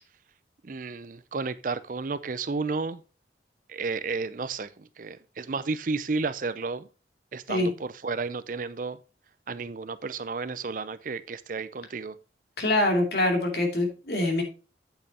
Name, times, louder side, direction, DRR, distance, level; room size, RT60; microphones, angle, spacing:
voice 1, 0.6-3.0 3.7-6.9 7.3-9.0 9.5-12.2, right 4 dB, 45° right, 0.5 m, -32 dB
voice 2, 12.6-14.4, left 1 dB, 60° left, 2.7 m, -24 dB
8.9 x 8.6 x 2.9 m
head